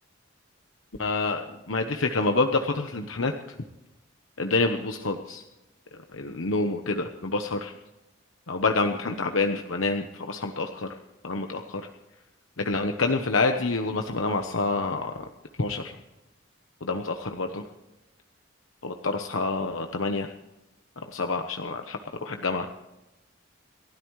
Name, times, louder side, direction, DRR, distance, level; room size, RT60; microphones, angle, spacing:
voice 1, 1.0-3.3 4.4-5.4 6.1-7.7 8.5-11.0 11.2-11.9 12.6-15.3 15.6-16.0 16.8-17.6 18.8-20.3 21.0-22.7, left 3 dB, 85° left, 5 dB, 1.0 m, -27 dB
29.5 x 13.0 x 3.2 m, 0.99 s
head